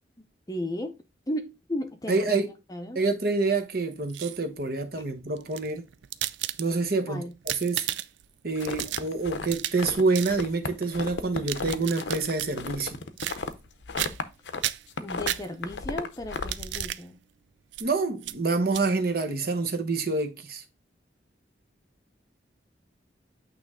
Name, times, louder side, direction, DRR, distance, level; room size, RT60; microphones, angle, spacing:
voice 1, 0.5-0.9 1.3-2.4 2.7-3.0 7.1-7.3 15.0-17.2, left 1 dB, 20° left, 0.6 m, -34 dB
voice 2, 2.1-2.5 2.9-5.9 6.6-7.8 8.4-13.0 17.8-20.6, right 3 dB, 55° right, 0.9 m, -27 dB
sound 1, 3.9-4.6 5.4-7.0 7.3-8.3 8.6-9.9 10.1-10.4 11.2-12.5 13.2-13.7 14.0-14.3 14.6-15.8 16.3-17.0 17.7-17.9 18.2-18.4 18.7-18.8, right 13 dB, 75° right, 0.4 m, -34 dB
sound 2, 8.6-10.0 10.3-14.6 14.9-16.9, left 4 dB, 75° left, 0.6 m, -34 dB
8.5 x 3.1 x 3.6 m
head